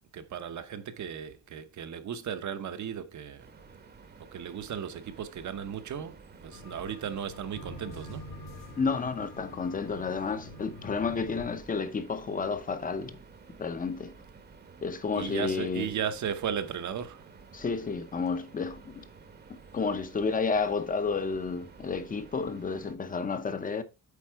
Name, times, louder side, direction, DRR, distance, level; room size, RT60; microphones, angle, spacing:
voice 1, 0.1-3.5 4.2-8.3 15.1-17.3, right 8 dB, 65° right, 0.9 m, -36 dB
sound 1, 3.4-23.0, right 5 dB, 30° right, 0.9 m, -52 dB
sound 2, 6.5-11.6, left 1 dB, 85° left, 3.1 m, -46 dB
voice 2, 8.8-13.2 13.5-14.1 14.8-15.9 17.5-19.1 19.5-23.8, left 5 dB, 25° left, 0.7 m, -31 dB
8.4 x 4.3 x 4.5 m
wide cardioid pair, 180°, 31 cm